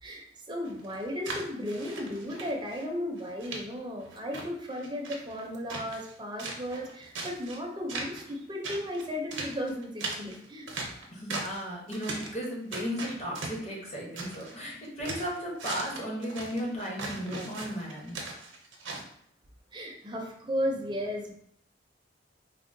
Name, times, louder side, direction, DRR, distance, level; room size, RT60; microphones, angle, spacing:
voice 1, 0.0-10.7 19.7-21.3, equal, 25° right, 1 dB, 0.5 m, -35 dB
sound 1, 0.7-2.9 3.2-3.6 4.0-6.1 6.4-7.6 7.9-8.3 8.6-11.6 11.9-12.4 12.7-14.5 14.8-19.0, right 3 dB, 85° right, 0.6 m, -39 dB
voice 2, 11.1-18.2, equal, 40° left, -3 dB, 0.8 m, -35 dB
3.5 x 2.1 x 2.5 m, 0.69 s
head